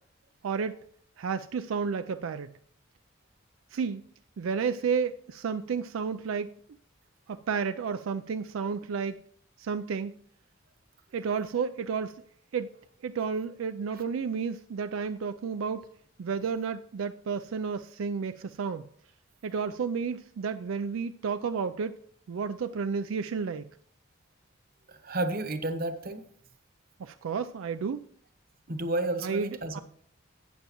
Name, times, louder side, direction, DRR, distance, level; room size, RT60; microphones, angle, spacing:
voice 1, 0.4-0.8 1.2-2.5 3.7-4.0 4.4-6.5 7.3-9.2 9.6-10.1 11.1-12.1 12.5-12.7 13.0-15.9 16.2-18.9 19.4-21.9 22.3-23.7 27.0-28.1 29.2-29.8, right 5 dB, 85° right, 9 dB, 0.4 m, -31 dB
voice 2, 24.9-26.2 28.7-29.8, right 2 dB, 45° right, 9 dB, 1.0 m, -31 dB
12.5 x 8.9 x 3.0 m, 0.63 s
head